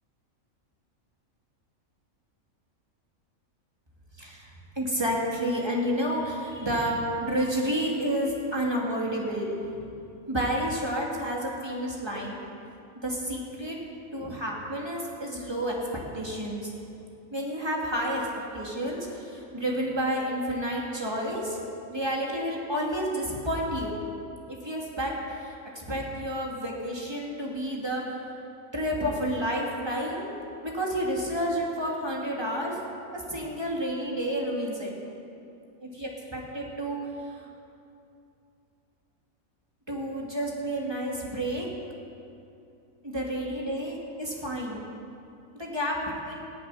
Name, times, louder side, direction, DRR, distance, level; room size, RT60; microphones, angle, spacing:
voice 1, 4.2-4.5 4.8-9.8 10.3-12.4 13.0-13.8 14.1-16.7 17.3-18.3 18.5-21.6 21.9-24.0 24.5-28.0 28.7-30.3 30.6-32.8 33.1-34.9 35.8-37.0 37.3-37.5 39.9-41.7 43.0-44.8 45.5-46.4, equal, 20° right, -3 dB, 2.6 m, -30 dB
16.5 x 7.7 x 9.9 m, 2.7 s
omnidirectional pair, 1.4 m